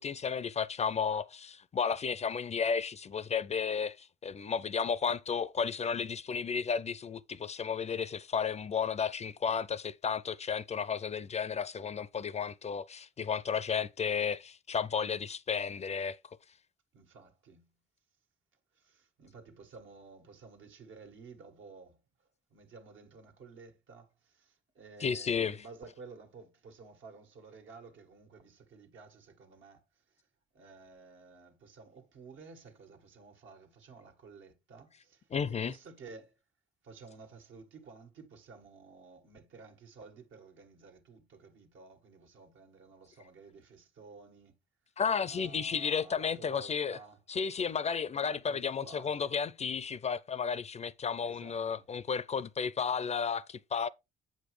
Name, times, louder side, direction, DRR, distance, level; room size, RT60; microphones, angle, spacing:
voice 1, 0.0-16.2 25.0-25.6 35.3-35.7 45.0-47.0 47.3-53.9, left 6 dB, 35° left, 0.4 m, -33 dB
voice 2, 16.9-17.7 18.7-30.3 30.5-36.4 36.8-44.6 45.2-47.2 48.2-49.4 51.2-51.9, right 4 dB, 75° right, 1.7 m, -53 dB
7.6 x 5.1 x 3.2 m
cardioid pair, 90°, 20 cm